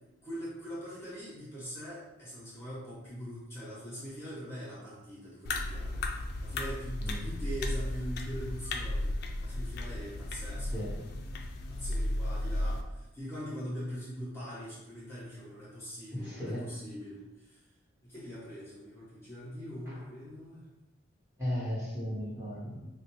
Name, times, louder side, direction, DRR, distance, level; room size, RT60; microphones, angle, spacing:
voice 1, 0.0-10.8 11.7-17.6 18.0-20.7, equal, 15° left, -8 dB, 0.9 m, -42 dB
sound 1, 5.4-12.8, left 1 dB, 55° left, 0.3 m, -34 dB
voice 2, 10.7-11.1 16.1-16.7 19.9-20.0 21.4-22.8, equal, 15° right, -8 dB, 1.1 m, -36 dB
4.0 x 2.1 x 3.0 m, 0.98 s
head